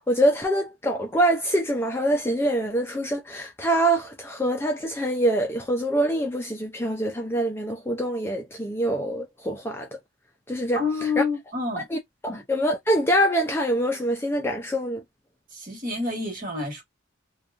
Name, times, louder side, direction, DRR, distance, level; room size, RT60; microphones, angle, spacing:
voice 1, 0.1-9.9 10.5-10.8 11.2-11.3 11.9-12.0 12.2-15.0, right 1 dB, 10° left, 0.3 m, -24 dB
voice 2, 10.7-11.9 12.3-12.4 15.5-16.8, left 4 dB, 40° right, 1.4 m, -28 dB
2.8 x 2.3 x 2.4 m
head